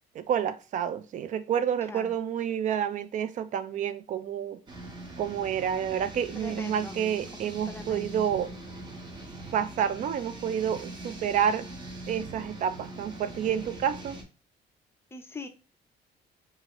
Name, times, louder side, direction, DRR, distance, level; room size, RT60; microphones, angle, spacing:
voice 1, 0.1-4.6 5.2-8.5 9.5-11.7 12.1-14.2, right 8 dB, 50° right, 13 dB, 0.4 m, -29 dB
sound 1, 4.7-14.2, right 2 dB, 25° right, 0.8 m, -42 dB
voice 2, 6.3-7.0 7.3-8.3 15.1-15.5, left 3 dB, 15° left, 5 dB, 0.5 m, -42 dB
2.8 x 2.4 x 2.9 m, 0.32 s
cardioid pair, 110°, 17 cm